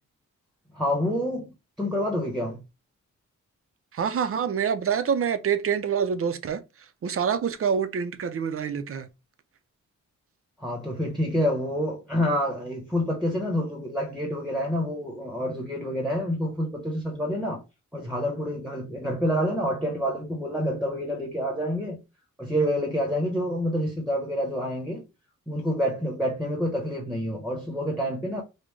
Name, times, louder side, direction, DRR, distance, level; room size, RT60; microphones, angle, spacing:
voice 1, 0.7-2.6 10.6-17.6 17.9-22.0 22.4-25.0 25.5-28.4, equal, ahead, 0.8 m, -28 dB
voice 2, 3.9-6.6 7.0-9.1, right 7 dB, 45° right, 0.5 m, -26 dB
5.2 x 2.1 x 3.2 m
wide cardioid pair, 180°, 31 cm